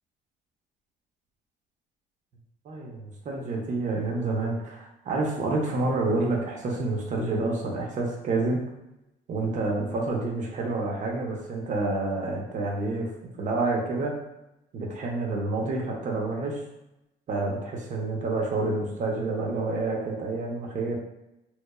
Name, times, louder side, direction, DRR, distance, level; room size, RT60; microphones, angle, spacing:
voice 1, 2.7-8.6 9.3-13.1 13.4-14.2 14.7-16.6 17.3-21.0, right 2 dB, 50° right, -1 dB, 0.6 m, -28 dB
3.0 x 2.0 x 2.2 m, 0.91 s
cardioid pair, 110°, 17 cm